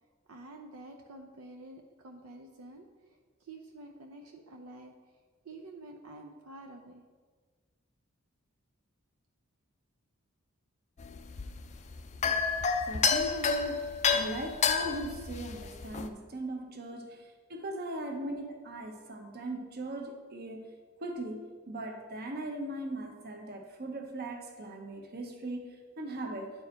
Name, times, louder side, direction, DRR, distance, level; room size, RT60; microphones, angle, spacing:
voice 1, 0.3-2.9 3.4-4.9 5.4-7.0, right 2 dB, 80° right, 3 dB, 0.6 m, -48 dB
sound 1, 11.0-16.1, left 5 dB, 35° left, 0.4 m, -30 dB
voice 2, 12.9-20.7 21.0-26.5, right 1 dB, 50° right, 4 dB, 0.9 m, -39 dB
9.6 x 4.7 x 4.4 m, 1.5 s
head